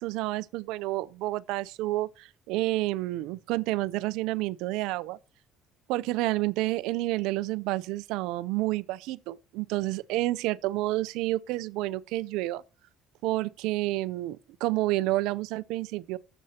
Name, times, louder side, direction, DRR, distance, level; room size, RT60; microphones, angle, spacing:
voice 1, 0.0-5.2 5.9-12.6 13.2-16.2, right 18 dB, 80° right, 0.5 m, -29 dB
11.5 x 7.8 x 4.3 m
cardioid pair, 100°, 0 cm